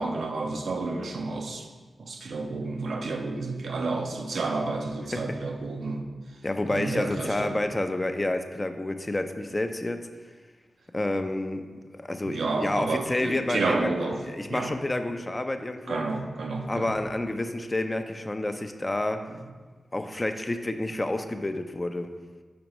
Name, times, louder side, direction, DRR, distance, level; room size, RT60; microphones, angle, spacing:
voice 1, 0.0-1.7 2.0-6.1 6.7-7.6 12.3-14.2 14.5-14.7 15.9-17.0 19.3-19.4, right 3 dB, 80° right, 3 dB, 0.4 m, -30 dB
voice 2, 6.4-10.1 10.9-11.6 11.9-13.9 14.2-16.0 16.7-19.2 19.9-22.1, left 1 dB, 30° left, 7 dB, 0.4 m, -29 dB
5.1 x 3.4 x 3.0 m, 1.4 s
cardioid pair, 40°, 0 cm